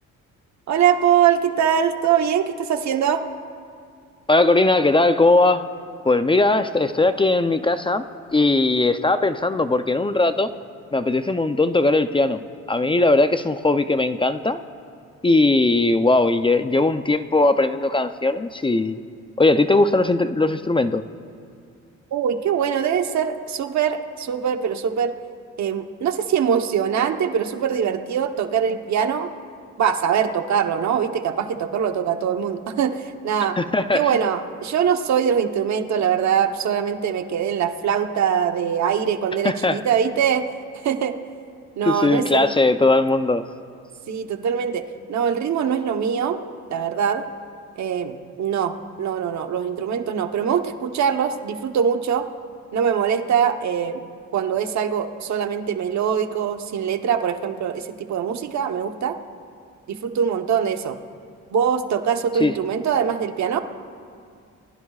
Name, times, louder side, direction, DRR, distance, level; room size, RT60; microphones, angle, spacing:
voice 1, 0.7-3.2 22.1-25.1 25.6-29.3 29.8-33.6 33.9-40.5 40.8-41.2 41.8-42.5 44.1-44.8 45.1-46.4 46.7-47.2 47.8-48.7 49.0-52.3 52.7-54.0 54.3-59.2 59.9-61.0 61.5-63.6, right 8 dB, 65° right, 6 dB, 1.1 m, -22 dB
voice 2, 4.3-5.7 6.0-8.0 8.3-10.5 10.9-12.4 12.7-14.6 15.2-19.0 19.4-21.0 33.6-34.1 39.4-39.8 41.9-43.4 62.4-62.5, left 2 dB, 15° left, 10 dB, 0.5 m, -19 dB
28.5 x 20.0 x 2.4 m, 2.3 s
cardioid pair, 90°, 30 cm